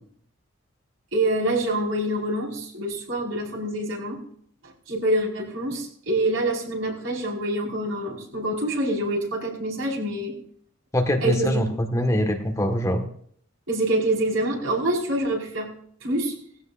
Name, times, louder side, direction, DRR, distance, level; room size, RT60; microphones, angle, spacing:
voice 1, 1.1-4.2 4.6-10.4 11.2-11.6 13.7-15.7 16.0-16.4, right 1 dB, 80° right, -2 dB, 5.0 m, -26 dB
voice 2, 10.9-13.1, equal, 15° left, 4 dB, 1.6 m, -23 dB
20.0 x 16.0 x 2.6 m, 0.63 s
head